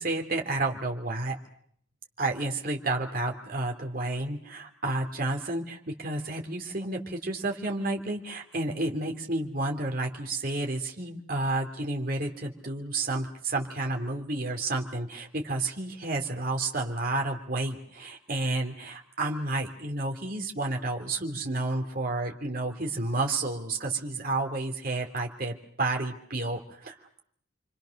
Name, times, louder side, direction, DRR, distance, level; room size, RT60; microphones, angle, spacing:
voice 1, 0.0-1.4 2.2-27.2, right 2 dB, 45° right, 2 dB, 3.1 m, -31 dB
29.5 x 24.5 x 6.6 m, 0.64 s
head